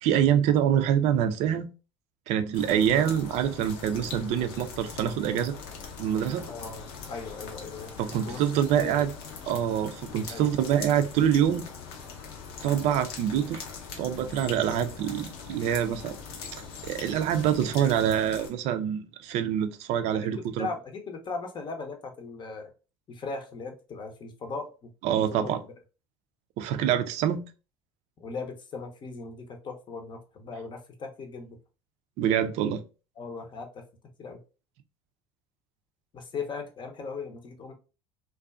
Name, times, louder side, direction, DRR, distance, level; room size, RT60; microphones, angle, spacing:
voice 1, 0.0-1.7 2.3-5.6 6.0-6.5 8.0-9.1 9.5-11.7 12.6-13.6 14.0-16.2 16.8-20.7 25.0-25.6 26.6-27.4 32.2-32.8, right 9 dB, 60° right, 0.4 m, -25 dB
sound 1, 2.5-18.5, left 5 dB, 80° left, 0.7 m, -42 dB
voice 2, 6.4-7.9 8.2-8.4 8.8-9.0 10.3-10.5 20.3-22.7 23.1-24.9 25.2-25.5 28.2-31.6 33.2-33.8 34.2-34.4 36.1-37.7, left 4 dB, 40° left, 0.7 m, -38 dB
2.5 x 2.3 x 2.3 m
hypercardioid pair, 65°, 13 cm